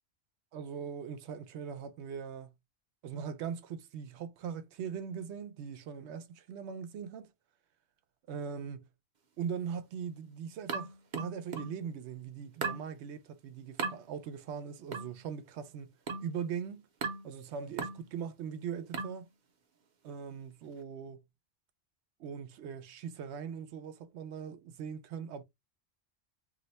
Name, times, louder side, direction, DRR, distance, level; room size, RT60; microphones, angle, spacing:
voice 1, 0.5-2.5 3.0-7.3 8.3-8.9 9.4-15.9 16.2-16.8 17.2-19.3 20.0-21.2 22.2-25.4, right 7 dB, 85° right, 0.9 m, -40 dB
sound 1, 10.7-11.8 12.6-12.9 13.8-14.0 14.9-15.2 16.1-16.4 17.0-17.3 17.8-18.1 18.9-19.2, right 4 dB, 50° right, 0.7 m, -37 dB
2.7 x 2.1 x 3.9 m
omnidirectional pair, 1.1 m